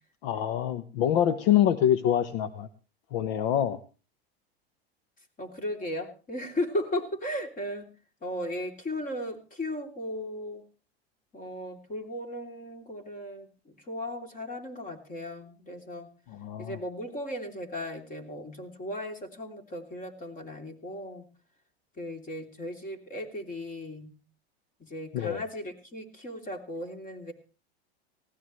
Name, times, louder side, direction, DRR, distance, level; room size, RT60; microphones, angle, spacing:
voice 1, 0.2-2.7 3.1-3.8 16.3-16.8 25.1-25.4, left 10 dB, 60° left, 12 dB, 1.0 m, -25 dB
voice 2, 5.4-7.9 8.2-10.6 11.3-16.1 16.6-21.2 22.0-24.2 24.8-27.3, left 1 dB, 25° left, 5 dB, 3.1 m, -36 dB
19.5 x 16.5 x 3.2 m, 0.35 s
hypercardioid pair, 115°, 32 cm